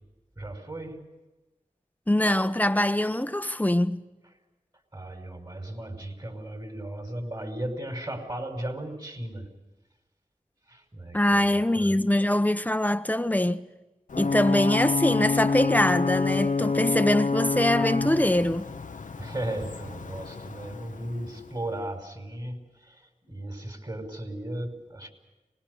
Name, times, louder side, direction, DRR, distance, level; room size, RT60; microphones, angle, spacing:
voice 1, 0.4-1.0 4.9-9.5 10.7-12.0 19.2-25.1, right 1 dB, 35° right, 5.3 m, -36 dB
voice 2, 2.1-4.0 11.1-13.6 14.2-18.7, left 1 dB, 10° left, 0.9 m, -23 dB
Ocean / Boat Water vehicle / Alarm, 14.1-21.7, left 4 dB, 85° left, 0.9 m, -28 dB
24.5 x 20.5 x 8.0 m
wide cardioid pair, 55°, 13 cm